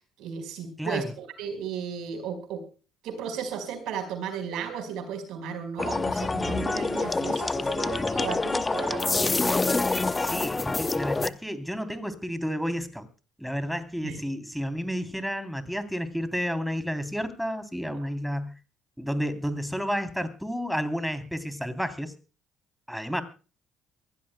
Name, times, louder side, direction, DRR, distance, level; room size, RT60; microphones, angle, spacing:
voice 1, 0.2-2.6 3.0-9.4 14.0-14.2 17.9-18.1, right 7 dB, 75° right, 7 dB, 4.7 m, -35 dB
sound 1, 5.8-11.3, left 3 dB, 25° left, 0.9 m, -26 dB
voice 2, 10.2-13.1 13.4-18.5 19.0-22.1 22.9-23.2, equal, ahead, 10 dB, 3.2 m, -31 dB
24.0 x 16.0 x 2.2 m, 0.35 s
supercardioid pair, 70°, 0 cm